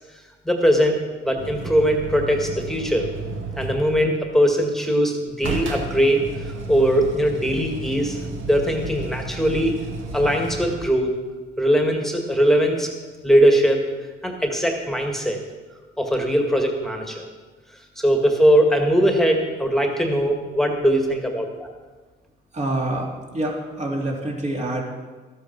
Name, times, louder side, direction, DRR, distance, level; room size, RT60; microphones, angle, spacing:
voice 1, 0.5-1.0 1.2-3.1 3.6-8.2 8.4-9.7 10.1-11.2 11.6-12.9 13.2-13.8 14.2-15.4 16.0-17.2 18.0-21.7, equal, ahead, 2 dB, 1.9 m, -20 dB
sound 1, 1.4-4.1 5.4-11.0 13.8-13.9, right 3 dB, 75° right, 1.8 m, -32 dB
voice 2, 22.5-23.1 23.3-24.8, right 1 dB, 35° right, -1 dB, 3.0 m, -26 dB
13.0 x 8.3 x 6.1 m, 1.3 s
cardioid pair, 90°, 20 cm